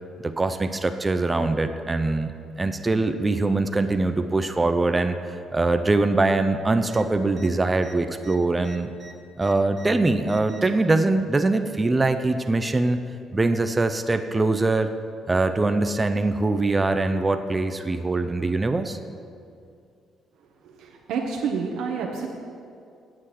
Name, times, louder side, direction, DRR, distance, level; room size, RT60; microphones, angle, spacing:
voice 1, 0.2-8.9 9.4-13.0 13.3-14.9 15.3-19.0, right 2 dB, 15° right, 8 dB, 0.5 m, -23 dB
sound 1, 6.8-7.0 7.3-7.5 7.8-9.9 10.2-10.8 11.8-12.5 13.5-13.6, right 3 dB, 50° right, 1.5 m, -47 dB
voice 2, 20.6-22.3, right 5 dB, 85° right, 0 dB, 0.9 m, -29 dB
8.6 x 7.7 x 6.3 m, 2.4 s
cardioid pair, 135°, 0 cm